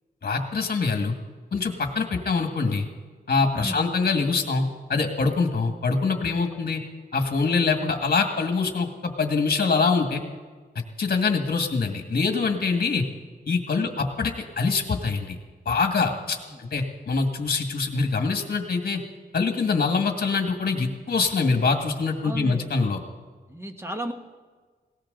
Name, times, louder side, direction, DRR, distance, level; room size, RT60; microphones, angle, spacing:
voice 1, 0.2-1.1 1.5-2.9 3.3-6.8 7.1-10.2 11.0-13.0 13.5-15.4 15.7-19.0 19.3-23.0, left 4 dB, 60° left, 4 dB, 1.9 m, -24 dB
voice 2, 22.2-22.9 23.5-24.1, right 1 dB, 15° right, 5 dB, 1.5 m, -35 dB
20.0 x 18.0 x 3.9 m, 1.4 s
wide cardioid pair, 105°, 18 cm